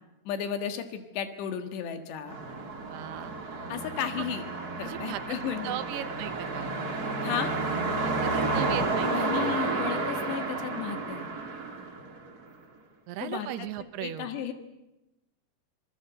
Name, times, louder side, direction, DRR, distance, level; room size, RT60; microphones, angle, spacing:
voice 1, 0.3-2.4 3.7-4.4 4.8-5.8 7.2-7.5 9.0-11.3 13.2-13.7 14.0-14.5, left 8 dB, 85° left, 8 dB, 3.9 m, -34 dB
sound 1, 2.3-12.5, right 3 dB, 35° right, 1.7 m, -31 dB
voice 2, 2.9-3.3 4.1-4.2 4.8-6.8 8.0-9.4 13.1-14.3, right 12 dB, 75° right, 11 dB, 2.9 m, -38 dB
26.0 x 20.0 x 7.9 m, 0.97 s
omnidirectional pair, 4.8 m